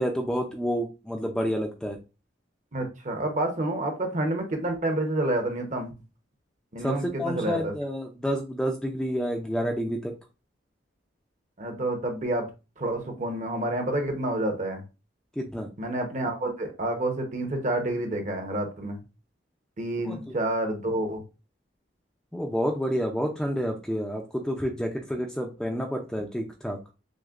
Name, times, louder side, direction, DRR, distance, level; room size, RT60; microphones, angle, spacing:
voice 1, 0.0-2.0 6.8-10.1 15.4-15.7 20.0-20.3 22.3-26.8, equal, 5° left, 0.4 m, -29 dB
voice 2, 2.7-5.9 6.7-7.7 11.6-12.5 12.8-14.8 15.8-19.0 19.8-21.2, right 1 dB, 40° right, 0.8 m, -29 dB
6.2 x 2.1 x 2.4 m
head